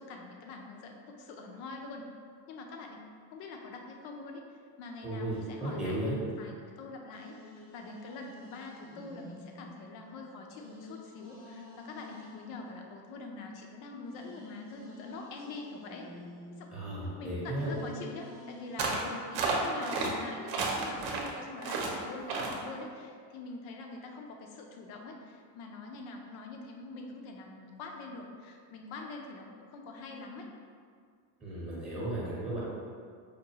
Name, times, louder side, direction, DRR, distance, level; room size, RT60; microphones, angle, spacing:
voice 1, 0.0-2.0 2.5-3.0 3.3-4.4 4.8-16.1 16.5-16.7 17.0-30.5, left 3 dB, 70° left, 2 dB, 0.7 m, -44 dB
voice 2, 5.0-6.2 16.7-17.7 31.4-32.6, right 1 dB, 15° right, -9 dB, 0.7 m, -35 dB
sound 1, 5.3-6.6 7.1-13.6 14.1-20.0, left 2 dB, 30° left, 0.5 m, -51 dB
sound 2, 18.8-19.1 19.3-20.1 20.5-21.3 21.6-21.9 22.3-22.6, right 4 dB, 50° right, 0.7 m, -31 dB
5.1 x 2.3 x 2.8 m, 2.1 s
cardioid pair, 135°, 49 cm